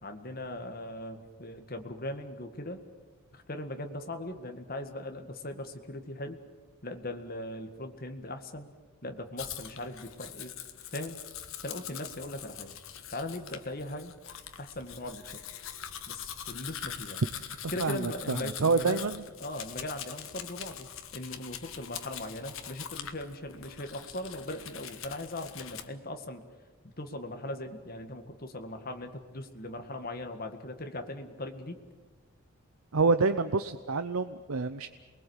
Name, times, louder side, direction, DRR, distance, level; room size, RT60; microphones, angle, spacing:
voice 1, 0.0-2.8 3.3-6.4 6.8-8.7 9.0-10.5 10.9-11.2 11.6-12.8 13.1-14.1 14.6-15.4 16.1-17.2 17.7-19.1 19.4-26.4 26.8-31.8, left 1 dB, 40° left, 5 dB, 1.9 m, -39 dB
Domestic sounds home sounds, 9.4-25.9, left 9 dB, 65° left, 1.5 m, -43 dB
voice 2, 17.8-19.2 32.9-34.9, right 4 dB, 70° right, 10 dB, 0.8 m, -27 dB
28.5 x 21.0 x 8.2 m, 1.4 s
head